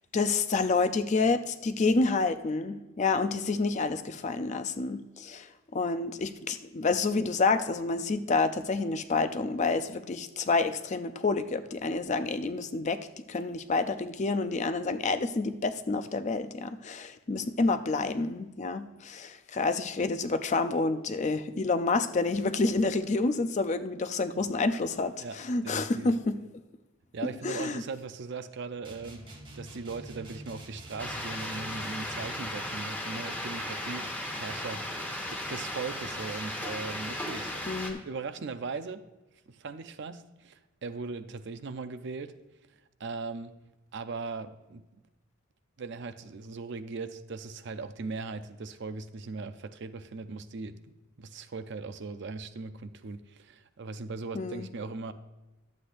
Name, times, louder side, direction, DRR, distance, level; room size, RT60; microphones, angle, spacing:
voice 1, 0.1-13.0 13.3-26.4 27.4-27.8 37.7-38.0 54.3-54.7, left 3 dB, 35° left, 11 dB, 0.4 m, -28 dB
voice 2, 25.6-26.1 27.1-29.2 29.6-37.5 37.8-39.0 39.5-42.4 43.0-43.6 43.9-44.8 45.8-50.8 51.2-55.1, right 4 dB, 55° right, 11 dB, 0.5 m, -39 dB
sound 1, 28.8-32.3, right 1 dB, 20° right, 1.0 m, -46 dB
sound 2, 31.0-37.9, left 1 dB, 10° left, 1.1 m, -36 dB
12.0 x 8.1 x 2.5 m, 1.1 s
head